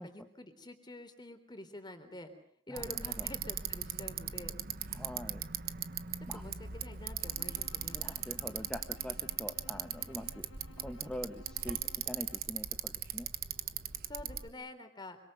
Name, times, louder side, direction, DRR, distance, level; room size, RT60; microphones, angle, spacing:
voice 1, 0.0-2.3 2.7-4.6 6.3-8.0 14.1-15.2, left 1 dB, 25° left, 8 dB, 3.7 m, -48 dB
voice 2, 2.7-3.3 4.9-5.4 6.3-6.4 7.9-10.5 10.8-13.3, equal, 5° left, 5 dB, 1.2 m, -44 dB
Bicycle, 2.8-14.5, right 9 dB, 50° right, 1.3 m, -39 dB
sound 1, 2.8-9.5, right 1 dB, 80° right, 2.3 m, -64 dB
Bowed string instrument, 7.2-12.6, left 1 dB, 85° left, 1.5 m, -57 dB
26.5 x 25.0 x 6.7 m, 0.67 s
head